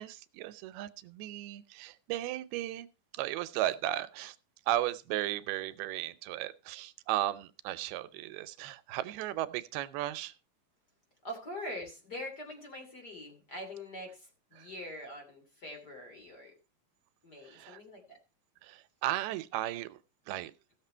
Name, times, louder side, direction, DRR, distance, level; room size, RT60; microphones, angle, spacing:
voice 1, 0.0-2.9 3.1-4.4 4.7-10.4 14.6-14.7 17.4-17.8 18.6-20.0 20.3-20.5, right 14 dB, 90° right, 2.7 m, -35 dB
voice 2, 11.2-16.5 17.2-18.2, left 1 dB, 30° left, 3.1 m, -43 dB
16.0 x 6.8 x 4.5 m
omnidirectional pair, 4.4 m